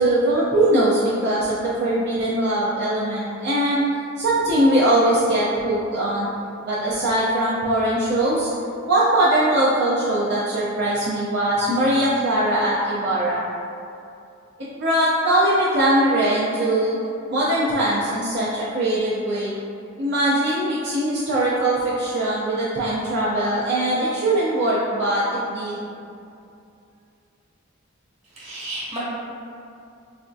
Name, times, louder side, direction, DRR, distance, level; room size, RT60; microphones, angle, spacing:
voice 1, 0.0-3.8 4.2-6.3 6.7-8.5 8.9-13.4 14.7-17.0 17.3-19.5 20.0-25.8, right 1 dB, 60° right, -9 dB, 0.5 m, -21 dB
voice 2, 28.4-29.0, right 1 dB, 30° right, -9 dB, 1.0 m, -32 dB
4.1 x 2.3 x 2.5 m, 2.5 s
head